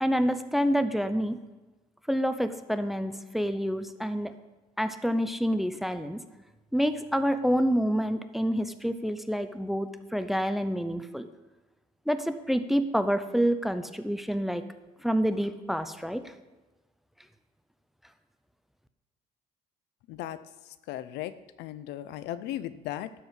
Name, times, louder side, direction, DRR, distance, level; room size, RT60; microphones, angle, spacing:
voice 1, 0.0-1.4 2.1-4.3 4.8-6.2 6.7-11.3 12.1-14.7 15.0-16.2, equal, ahead, 10 dB, 0.6 m, -27 dB
voice 2, 20.9-21.3 21.6-23.1, left 13 dB, 85° left, 14 dB, 0.6 m, -36 dB
12.5 x 4.6 x 8.0 m, 1.1 s
cardioid pair, 110°, 17 cm